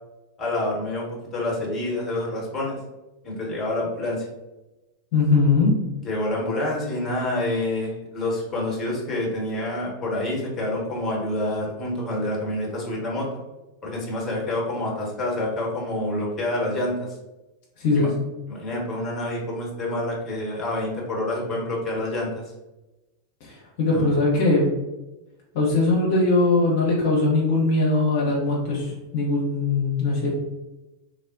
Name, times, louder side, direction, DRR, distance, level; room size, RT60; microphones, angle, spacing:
voice 1, 0.4-2.8 3.2-4.3 6.0-13.4 13.8-17.1 17.9-18.1 18.5-22.4 23.8-24.2, left 1 dB, 20° left, -3 dB, 0.9 m, -27 dB
voice 2, 5.1-5.8 17.8-18.1 23.4-24.7 25.5-30.4, left 3 dB, 50° left, -3 dB, 0.6 m, -21 dB
3.2 x 2.0 x 2.5 m, 1.0 s
figure-of-eight pair, 90°, 0 cm